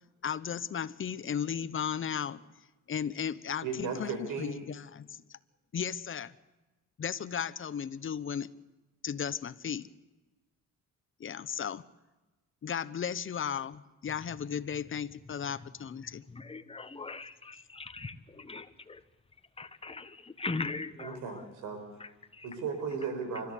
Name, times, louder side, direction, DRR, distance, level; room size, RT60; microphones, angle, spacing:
voice 1, 0.2-2.4 2.9-5.4 5.7-6.3 7.0-8.5 9.0-9.9 11.2-11.8 12.6-16.2, left 8 dB, 40° left, 17 dB, 1.0 m, -35 dB
voice 2, 3.6-4.6 21.0-22.0 22.4-23.5, right 5 dB, 90° right, 7 dB, 5.2 m, -36 dB
voice 3, 16.0-19.0 19.6-21.4 22.0-22.5, left 3 dB, 20° left, 10 dB, 1.4 m, -40 dB
29.0 x 13.5 x 8.4 m, 1.1 s
cardioid pair, 90°, 30 cm